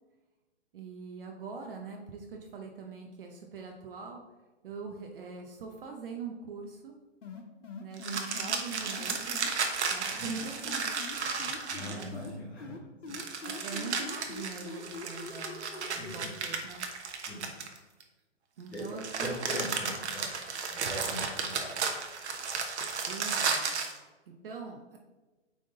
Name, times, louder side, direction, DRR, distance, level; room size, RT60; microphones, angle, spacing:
voice 1, 0.7-4.2 4.6-7.0 7.8-9.4 9.9-10.9 11.8-12.2 13.4-16.9 18.6-19.4 23.1-23.7 24.3-25.0, right 5 dB, 50° right, 2 dB, 0.8 m, -43 dB
sound 1, 7.2-9.5 10.3-12.3 12.6-16.2, left 4 dB, 85° left, 1.3 m, -43 dB
sound 2, 8.0-12.3 13.1-18.0 18.7-24.0, right 5 dB, 65° right, 1.2 m, -34 dB
voice 2, 11.7-12.7 13.1-13.2 16.0-16.3 17.3-17.6 18.7-18.8 19.2-20.3 20.7-21.8, equal, 5° left, -9 dB, 0.5 m, -40 dB
8.8 x 3.7 x 3.9 m, 1.2 s
hypercardioid pair, 150°, 36 cm